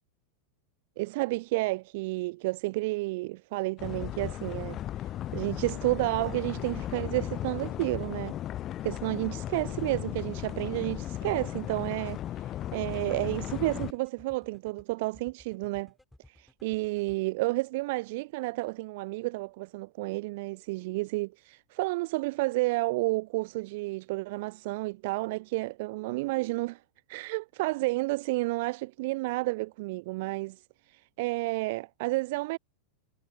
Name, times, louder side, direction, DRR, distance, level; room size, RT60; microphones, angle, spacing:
voice 1, 1.0-8.4 8.8-15.9 16.3-26.8 27.1-32.6, right 22 dB, 50° right, 0.3 m, -31 dB
sound 1, 3.8-13.9, left 12 dB, 30° left, 0.5 m, -36 dB
sound 2, 9.9-17.2, left 1 dB, 5° left, 3.4 m, -56 dB
figure-of-eight pair, 90°, 0 cm